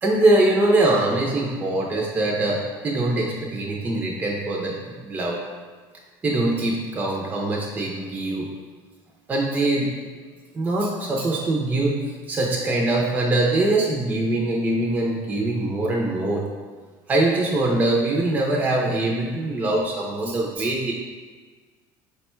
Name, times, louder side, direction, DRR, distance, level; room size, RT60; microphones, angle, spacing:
voice 1, 0.0-5.4 6.2-8.5 9.3-9.9 10.5-12.0 12.3-16.4 17.1-20.9, right 2 dB, 15° right, -2 dB, 0.4 m, -23 dB
4.8 x 2.2 x 4.3 m, 1.4 s
cardioid pair, 155°, 9 cm